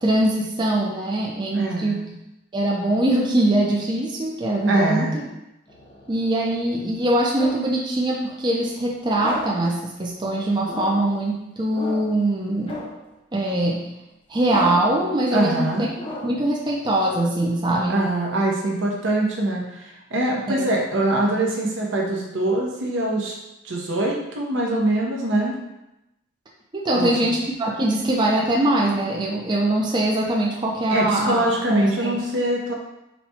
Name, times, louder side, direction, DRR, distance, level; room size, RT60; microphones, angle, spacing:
voice 1, 0.0-2.0 2.5-5.1 6.1-12.8 13.3-13.8 14.3-15.9 16.2-18.0 20.5-20.7 26.7-32.2, right 1 dB, 25° right, -3 dB, 0.5 m, -22 dB
voice 2, 1.5-2.0 4.7-5.1 15.3-15.9 17.9-23.3 23.6-25.6 26.9-27.3 30.9-32.7, right 1 dB, 75° right, -2 dB, 0.9 m, -23 dB
sound 1, 5.7-7.8 9.1-9.7 10.6-11.2 11.7-12.2 12.7-13.1 14.4-15.0 15.9-16.5, left 1 dB, 25° left, 0.6 m, -35 dB
4.1 x 2.2 x 4.2 m, 0.90 s
head